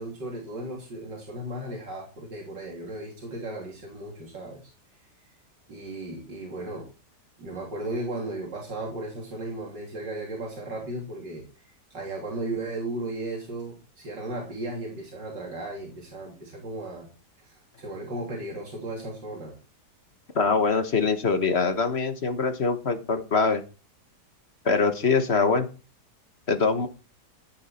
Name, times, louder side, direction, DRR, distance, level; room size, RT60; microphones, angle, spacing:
voice 1, 0.0-4.7 5.7-6.9 7.4-17.1 17.4-19.6, right 2 dB, 85° right, -1 dB, 3.7 m, -35 dB
voice 2, 20.3-23.6 24.6-25.7 26.5-26.9, left 4 dB, 40° left, 9 dB, 1.4 m, -23 dB
14.0 x 8.6 x 4.3 m, 0.34 s
omnidirectional pair, 1.8 m